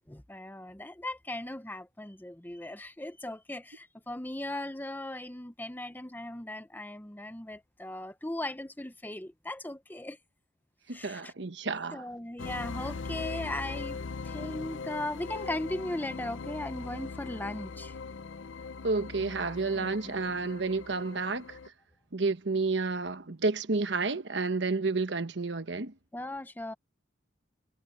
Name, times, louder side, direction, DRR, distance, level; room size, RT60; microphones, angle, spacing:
voice 1, 0.1-10.2 10.9-11.3 11.9-18.0 19.7-20.1 26.1-26.7, left 1 dB, 10° left, 0.8 m, -38 dB
voice 2, 10.9-12.0 18.8-21.6 22.1-25.9, right 3 dB, 65° right, 1.1 m, -30 dB
sound 1, 12.4-21.7, left 4 dB, 85° left, 0.7 m, -40 dB
head